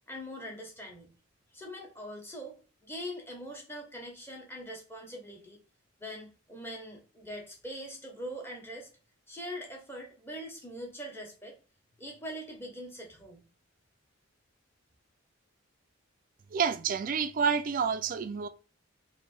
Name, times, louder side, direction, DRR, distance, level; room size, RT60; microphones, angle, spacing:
voice 1, 0.1-1.1 1.5-5.6 6.0-8.9 9.3-11.6 12.0-13.4, equal, 10° left, 1.0 m, -42 dB
voice 2, 16.5-18.5, right 6 dB, 40° right, 0.3 m, -29 dB
3.3 x 2.6 x 4.2 m
head